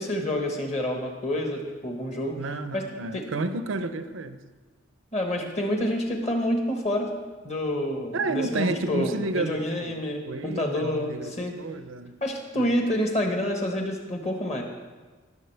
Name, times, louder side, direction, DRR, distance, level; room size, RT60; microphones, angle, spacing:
voice 1, 0.0-2.4 2.7-2.8 3.1-3.2 5.1-7.1 7.4-11.5 12.2-14.6, left 1 dB, 35° left, 2 dB, 1.3 m, -28 dB
voice 2, 2.3-4.4 8.1-10.0 10.2-12.1 12.6-12.8, right 3 dB, 80° right, 10 dB, 0.6 m, -31 dB
18.5 x 7.1 x 3.4 m, 1.3 s
head